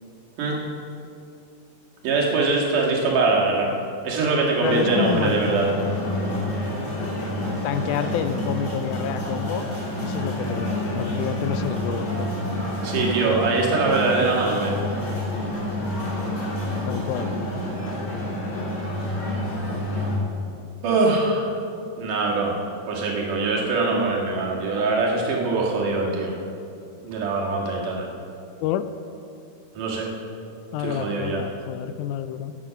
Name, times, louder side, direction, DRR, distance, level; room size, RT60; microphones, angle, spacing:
voice 1, 2.0-3.7 4.0-5.7 12.8-14.8 20.8-21.5 22.0-26.4 27.0-28.1 29.7-30.1 30.8-31.4, right 3 dB, 85° right, -2 dB, 3.3 m, -23 dB
voice 2, 4.6-5.4 7.6-9.7 10.0-12.3 16.8-17.5 28.6-28.9 30.7-32.6, left 10 dB, 80° left, 11 dB, 2.0 m, -28 dB
sound 1, 4.6-20.2, left 1 dB, 40° left, 3.5 m, -28 dB
11.5 x 9.1 x 5.8 m, 2.5 s
omnidirectional pair, 3.6 m